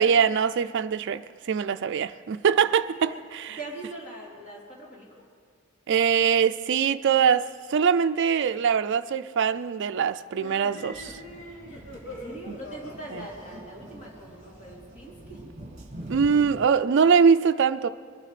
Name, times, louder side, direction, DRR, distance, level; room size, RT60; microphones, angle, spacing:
voice 1, 0.0-3.6 5.9-7.4 7.7-11.2 12.5-12.6 13.1-13.3 16.1-17.9, right 6 dB, 55° right, 0.4 m, -23 dB
voice 2, 3.5-5.1 11.7-15.5, right 2 dB, 35° left, 3.4 m, -42 dB
sound 1, 10.3-15.0, left 1 dB, 65° left, 2.6 m, -43 dB
sound 2, 10.9-16.7, right 1 dB, 35° right, 1.9 m, -44 dB
22.5 x 12.0 x 5.0 m
head